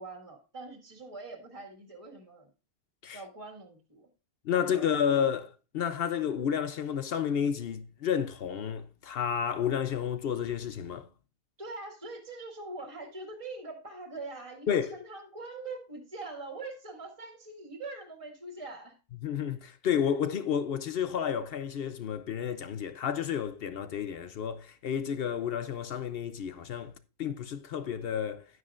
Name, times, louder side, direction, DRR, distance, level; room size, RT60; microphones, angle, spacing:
voice 1, 0.0-2.5 3.1-4.1 4.6-5.1 11.6-19.0, right 3 dB, 20° right, 1.8 m, -43 dB
voice 2, 4.4-11.1 14.7-14.9 19.2-26.9 27.2-28.5, left 8 dB, 65° left, 0.6 m, -31 dB
11.0 x 9.4 x 2.5 m
omnidirectional pair, 1.6 m